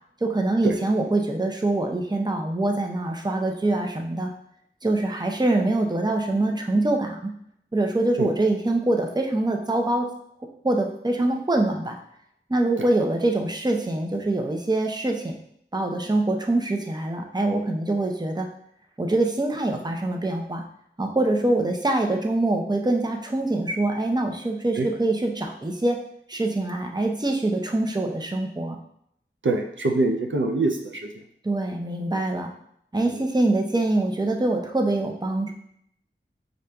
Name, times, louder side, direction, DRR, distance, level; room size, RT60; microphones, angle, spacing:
voice 1, 0.2-4.3 4.8-7.3 7.7-10.1 10.6-12.0 12.5-15.4 15.7-18.5 19.0-20.6 21.0-26.0 26.3-28.8 31.4-32.5 32.9-35.5, right 2 dB, 20° right, 2 dB, 0.6 m, -24 dB
voice 2, 29.4-31.1 33.1-33.2, right 2 dB, 70° right, 2 dB, 0.5 m, -24 dB
4.9 x 3.8 x 2.3 m, 0.70 s
wide cardioid pair, 40°, 20 cm